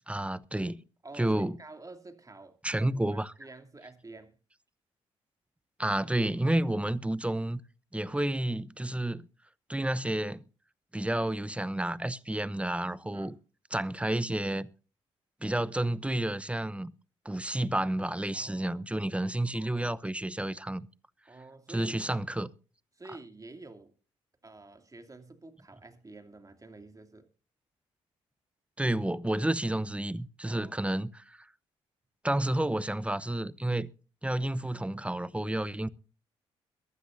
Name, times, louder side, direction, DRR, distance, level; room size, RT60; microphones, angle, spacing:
voice 1, 0.1-0.8 1.2-1.5 2.6-3.3 5.8-7.6 7.9-9.3 9.7-10.4 10.9-13.4 13.7-14.7 15.4-16.9 17.2-20.9 21.7-22.5 28.8-31.5 32.2-33.9 34.2-35.9, right 1 dB, 10° right, 0.8 m, -30 dB
voice 2, 1.0-4.3 13.1-13.3 18.3-19.1 21.3-22.0 22.9-23.9 24.4-27.3 30.4-31.0, right 2 dB, 25° right, 2.8 m, -49 dB
22.5 x 12.5 x 2.7 m
hypercardioid pair, 45°, 13 cm